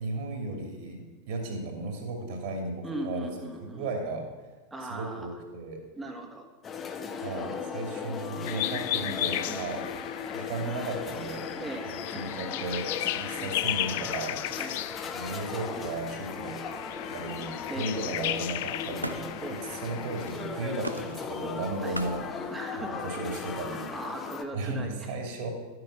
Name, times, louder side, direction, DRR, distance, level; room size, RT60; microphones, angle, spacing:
voice 1, 0.0-4.3 4.9-5.8 7.2-9.9 10.3-14.4 15.1-16.6 17.1-22.5 22.8-23.9 24.5-25.5, right 2 dB, 50° right, 3 dB, 2.7 m, -35 dB
voice 2, 2.8-3.9 4.7-5.4 5.9-6.5 11.6-11.9 14.6-14.8 17.7-18.0 19.4-19.7 21.8-22.0 22.5-23.0 23.9-25.1, right 1 dB, 10° right, 4 dB, 1.7 m, -38 dB
sound 1, 6.6-24.4, left 5 dB, 25° left, 1.0 m, -37 dB
sound 2, 8.5-20.3, left 14 dB, 50° left, 0.4 m, -35 dB
Camera, 16.3-16.9 17.2-22.7, right 1 dB, 85° right, 0.7 m, -44 dB
12.0 x 7.9 x 5.9 m, 1.3 s
figure-of-eight pair, 90°, 0 cm